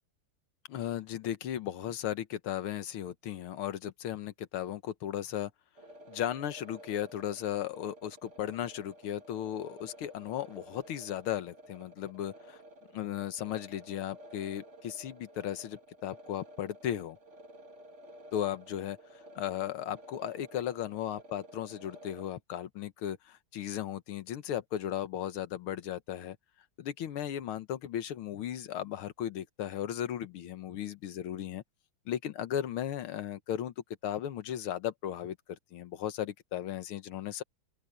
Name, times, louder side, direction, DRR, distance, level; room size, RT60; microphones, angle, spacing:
voice 1, 0.7-5.5 6.1-12.6 12.9-17.2 18.3-19.0 19.4-26.4 26.8-31.6 32.1-37.4, left 11 dB, 90° left, 2.0 m, -36 dB
sound 1, 5.8-22.3, right 1 dB, 35° right, 2.1 m, -53 dB
open air
omnidirectional pair, 2.3 m